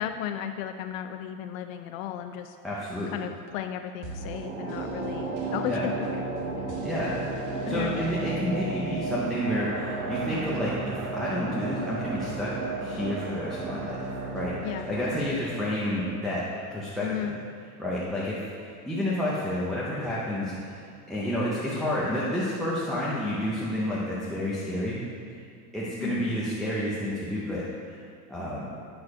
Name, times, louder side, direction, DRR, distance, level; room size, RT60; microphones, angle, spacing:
voice 1, 0.0-2.6 3.1-6.2 6.6-6.7 7.7-8.0 14.6-14.9 17.0-17.4 26.0-26.3, left 10 dB, 70° left, 7 dB, 0.5 m, -34 dB
voice 2, 2.6-3.1 5.7-5.8 6.8-7.2 7.7-12.5 12.8-14.0 14.3-16.4 16.7-17.3 17.8-20.8 21.1-25.0 25.7-27.6 27.9-28.7, left 1 dB, ahead, -8 dB, 0.5 m, -30 dB
sound 1, 4.0-17.1 17.4-17.5, right 3 dB, 50° right, 1.1 m, -33 dB
8.7 x 6.3 x 4.7 m, 2.4 s
supercardioid pair, 165°, 42 cm